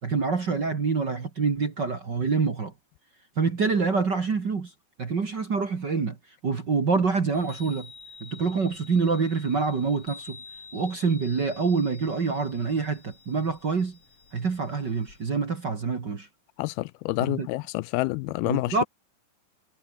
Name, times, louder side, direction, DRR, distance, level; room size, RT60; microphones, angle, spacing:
voice 1, 0.0-2.7 3.4-4.7 5.0-6.2 6.4-7.9 8.2-10.4 10.7-14.0 14.3-16.3 17.3-17.5 18.4-18.8, right 4 dB, 35° right, 2.0 m, -26 dB
Chime, 7.2-15.4, left 4 dB, 40° left, 5.4 m, -49 dB
voice 2, 16.6-18.8, left 21 dB, 85° left, 2.4 m, -28 dB
omnidirectional pair, 4.5 m